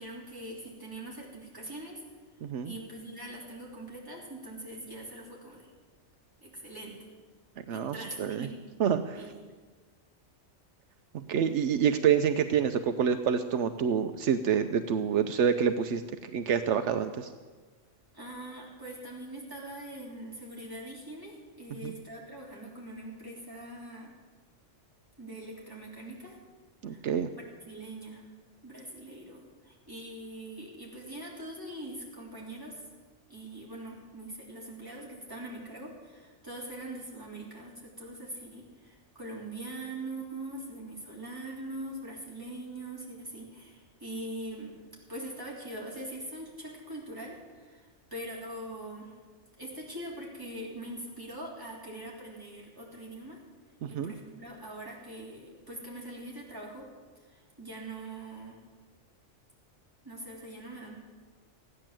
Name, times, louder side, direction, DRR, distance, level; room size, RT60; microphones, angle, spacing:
voice 1, 0.0-2.0 2.6-5.7 6.4-7.1 7.7-8.6 9.1-9.4 18.1-24.1 25.2-26.4 26.9-27.0 27.4-28.2 28.6-32.8 33.3-44.8 45.1-49.1 49.6-53.4 53.9-56.9 57.3-58.6 60.0-61.0, right 1 dB, 15° right, -4 dB, 3.5 m, -42 dB
voice 2, 2.4-2.7 7.7-8.5 8.8-9.3 11.1-17.3 21.8-21.9 26.8-27.3 53.8-54.1, right 7 dB, 80° right, 9 dB, 0.9 m, -27 dB
15.0 x 10.0 x 7.5 m, 1.4 s
omnidirectional pair, 1.2 m